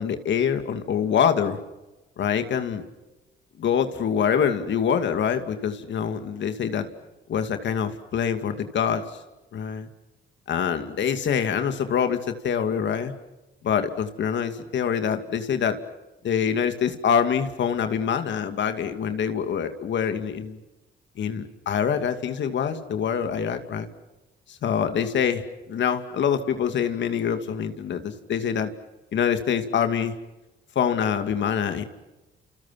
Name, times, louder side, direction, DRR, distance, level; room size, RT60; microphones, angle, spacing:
voice 1, 0.0-1.6 2.2-2.8 3.6-6.9 7.3-9.0 9.5-9.9 10.5-13.1 13.6-15.8 16.2-20.6 21.2-23.9 24.5-25.4 25.7-28.7 29.1-30.1 30.8-31.8, left 7 dB, 65° left, 8 dB, 2.6 m, -25 dB
30.0 x 28.5 x 6.0 m, 1.1 s
cardioid pair, 90°, 20 cm